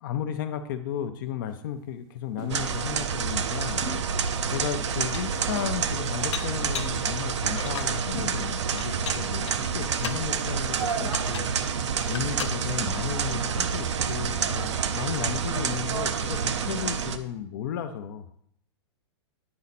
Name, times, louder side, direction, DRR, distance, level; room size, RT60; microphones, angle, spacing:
voice 1, 0.0-3.9 4.5-11.5 12.1-18.5, left 9 dB, 45° left, 8 dB, 0.6 m, -34 dB
sound 1, 1.5-1.6 2.4-2.8 3.8-4.2 4.6-4.7 5.3-5.9 6.8-7.4 8.1-8.6 9.6-10.0 10.6-10.7 11.0-11.4, right 1 dB, 25° right, 0.7 m, -42 dB
sound 2, 2.5-17.2, right 6 dB, 85° right, 0.6 m, -28 dB
Dishes pots and pans, 4.2-4.3 4.8-5.4 6.3-7.0 7.5-8.0 8.8-10.3 10.9-11.6 11.9-12.6, left 9 dB, 85° left, 0.6 m, -38 dB
9.6 x 4.3 x 4.1 m, 0.70 s
hypercardioid pair, 150°, 15 cm